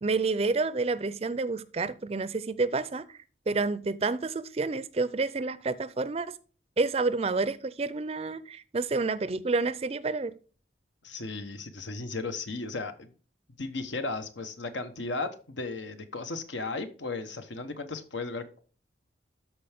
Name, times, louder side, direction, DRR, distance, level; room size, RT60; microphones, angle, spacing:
voice 1, 0.0-3.2 3.5-6.3 6.8-10.3, right 3 dB, 35° right, 0.4 m, -29 dB
voice 2, 11.0-13.1 13.6-18.6, left 3 dB, 80° left, 1.1 m, -35 dB
13.0 x 4.5 x 3.5 m
head